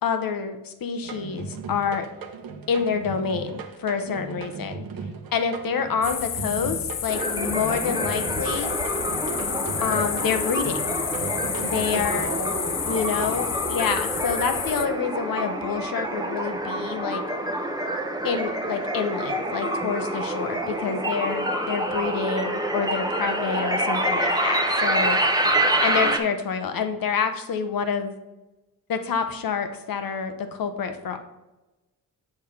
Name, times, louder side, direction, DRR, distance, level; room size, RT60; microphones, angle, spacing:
voice 1, 0.0-2.1 2.7-4.8 5.3-8.7 9.8-10.8 11.6-12.3 12.9-17.2 18.2-25.2 25.8-28.1 28.9-31.2, left 6 dB, 60° left, 8 dB, 0.9 m, -27 dB
sound 1, 1.0-12.0, right 5 dB, 65° right, 0.9 m, -37 dB
sound 2, 6.0-14.9, left 9 dB, 45° left, 0.5 m, -30 dB
sound 3, 7.1-26.2, right 1 dB, 10° right, 0.8 m, -27 dB
voice 2, 7.6-8.0 12.1-13.6, right 2 dB, 35° right, 2 dB, 1.5 m, -37 dB
6.8 x 3.5 x 5.8 m, 1.0 s
cardioid pair, 70°, 38 cm